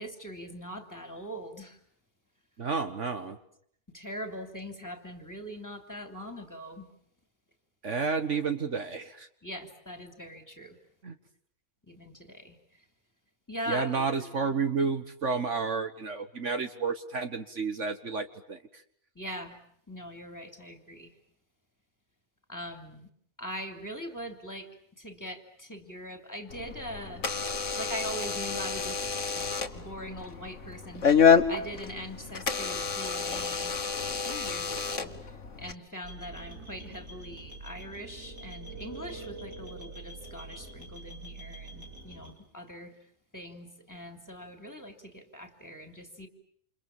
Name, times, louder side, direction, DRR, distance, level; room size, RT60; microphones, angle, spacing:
voice 1, 0.0-1.8 3.9-6.9 9.4-10.8 11.8-12.9 13.5-14.3 19.1-19.6 19.9-21.2 22.5-23.1 23.4-27.3 27.8-43.1 43.3-46.3, equal, 15° left, 6 dB, 3.2 m, -42 dB
voice 2, 2.6-3.4 7.8-9.3 11.0-11.1 13.7-18.6, right 4 dB, 60° right, 8 dB, 1.8 m, -31 dB
Door / Alarm, 26.5-35.7, left 6 dB, 60° left, 1.9 m, -28 dB
sound 1, 36.0-42.3, right 2 dB, 90° right, 6.3 m, -44 dB
29.0 x 28.0 x 7.3 m, 0.65 s
omnidirectional pair, 1.4 m